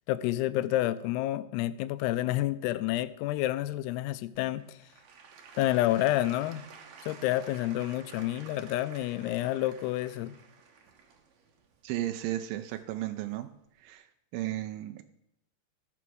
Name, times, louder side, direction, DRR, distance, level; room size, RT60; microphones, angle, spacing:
voice 1, 0.1-4.8 5.6-6.6 7.0-10.4, left 15 dB, 85° left, 15 dB, 2.6 m, -29 dB
Applause / Crowd, 4.3-13.2 13.8-13.9, right 6 dB, 70° right, 1.7 m, -52 dB
voice 2, 11.8-13.5 13.8-14.1 14.3-15.0, right 14 dB, 85° right, 7 dB, 2.0 m, -34 dB
14.5 x 5.9 x 6.2 m, 0.77 s
omnidirectional pair, 4.7 m